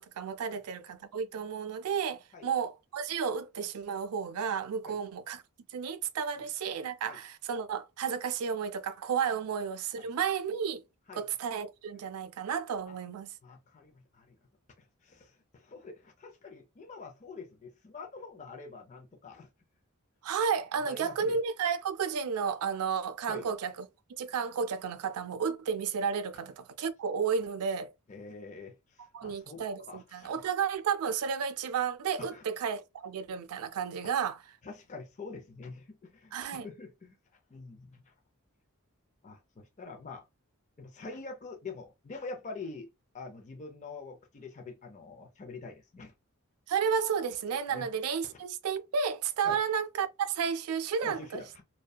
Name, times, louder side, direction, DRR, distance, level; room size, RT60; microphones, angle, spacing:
voice 1, 0.0-5.4 5.7-10.8 11.1-13.3 20.2-23.7 24.2-27.9 29.1-34.4 36.3-36.7 46.7-51.4, right 6 dB, 85° right, 0.4 m, -32 dB
voice 2, 13.4-14.3 14.8-19.5 20.8-21.4 23.3-23.5 28.1-30.4 32.2-32.4 34.6-37.2 37.5-38.1 39.2-40.2 40.8-46.1 47.7-47.9 48.2-48.4 49.4-49.6 51.0-51.6, left 3 dB, 35° left, 0.4 m, -46 dB
2.7 x 2.1 x 2.2 m
head